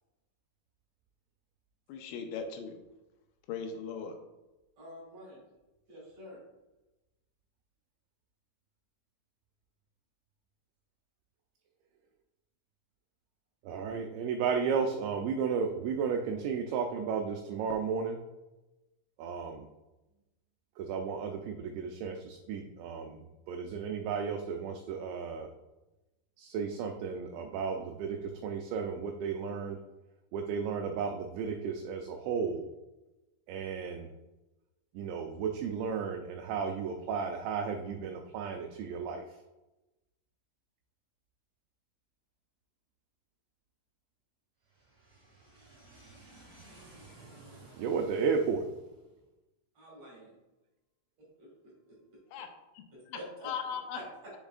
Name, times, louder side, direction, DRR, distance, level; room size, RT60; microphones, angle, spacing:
voice 1, 1.9-2.8 3.5-4.2 52.3-52.5 52.8-52.9 53.1-53.2 53.4-54.0, left 6 dB, 85° left, 5 dB, 3.1 m, -38 dB
voice 2, 4.8-5.4 5.9-6.4 44.6-48.3 49.1-49.2 49.7-50.3 51.2-52.2 52.9-53.5 53.9-54.3, right 1 dB, 45° right, -5 dB, 2.5 m, -50 dB
voice 3, 13.6-18.2 19.2-19.7 20.8-25.5 26.4-29.8 30.3-32.7 33.5-34.1 34.9-39.3 47.8-48.6, right 6 dB, 85° right, 4 dB, 2.5 m, -33 dB
7.2 x 7.0 x 2.4 m, 1.0 s
omnidirectional pair, 5.6 m